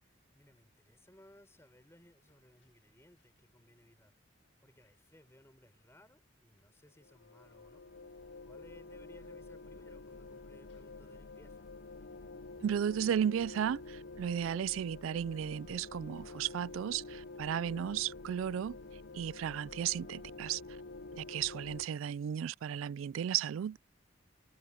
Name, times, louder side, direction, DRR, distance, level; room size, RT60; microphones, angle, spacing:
voice 1, 0.0-4.1 4.6-7.8 8.1-11.7, left 1 dB, 15° left, 3.9 m, -62 dB
sound 1, 1.4-18.9, left 4 dB, 85° left, 7.1 m, -81 dB
sound 2, 7.0-21.9, left 3 dB, 55° left, 0.6 m, -48 dB
voice 2, 12.6-18.8 19.1-20.6 21.1-23.8, right 9 dB, 90° right, 0.3 m, -34 dB
head